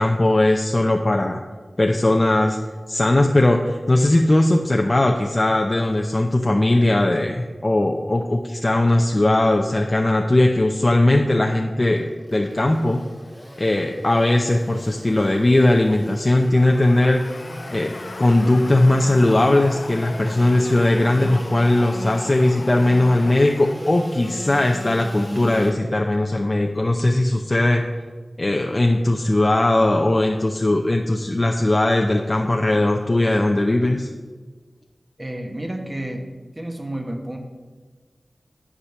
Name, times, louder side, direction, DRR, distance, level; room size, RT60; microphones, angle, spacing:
voice 1, 0.0-1.4 1.8-2.6 2.9-13.0 13.6-17.2 17.7-27.9 28.4-34.1, left 1 dB, 35° left, 2 dB, 0.6 m, -19 dB
Engine / Sawing, 11.9-25.7, left 1 dB, 10° left, 1.1 m, -38 dB
sound 1, 16.6-23.7, left 3 dB, 80° left, 0.6 m, -38 dB
voice 2, 35.2-36.3 36.5-37.4, right 1 dB, 25° right, 3 dB, 1.3 m, -30 dB
10.0 x 4.9 x 7.0 m, 1.4 s
wide cardioid pair, 70°, 0 cm